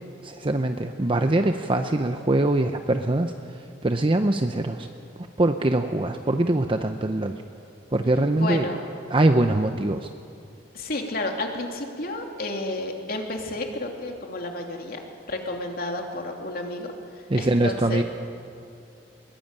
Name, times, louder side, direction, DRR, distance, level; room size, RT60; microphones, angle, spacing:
voice 1, 0.2-4.9 5.2-7.4 7.9-8.7 9.1-10.1 17.3-18.0, right 2 dB, 30° right, 6 dB, 0.7 m, -23 dB
voice 2, 8.4-8.8 10.7-15.0 15.3-16.9 17.4-18.0, left 2 dB, 55° left, 2 dB, 3.0 m, -31 dB
22.0 x 20.5 x 9.0 m, 2.4 s
head